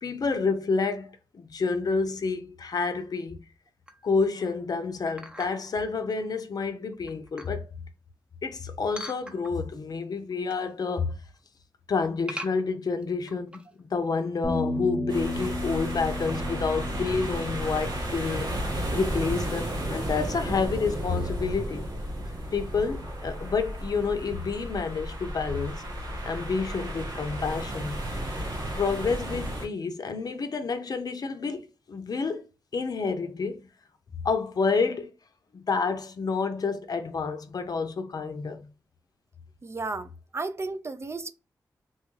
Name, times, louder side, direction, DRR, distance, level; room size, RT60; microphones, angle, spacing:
voice 1, 0.0-3.4 4.0-7.7 8.4-11.2 11.9-18.5 18.9-21.9 22.5-25.8 26.2-28.0 28.8-32.4 32.7-33.6 34.2-35.1 35.5-38.7, left 4 dB, 60° left, 0.5 m, -29 dB
sound 1, 3.9-4.2 5.2-5.8 6.4-6.5 6.9-7.6 9.0-9.8 10.2-10.7 11.0-11.4 12.3-13.8 14.2-14.3 14.5-14.6 15.2-15.5 16.1-16.6 17.0-17.3, equal, 15° right, 0.7 m, -42 dB
Bass guitar, 14.4-19.2 19.5-20.7, left 2 dB, 25° left, 0.8 m, -35 dB
sound 2, 15.1-29.7, right 1 dB, 90° right, 1.1 m, -33 dB
voice 2, 39.6-41.3, right 3 dB, 35° right, 0.4 m, -34 dB
2.9 x 2.2 x 3.1 m
cardioid pair, 45°, 7 cm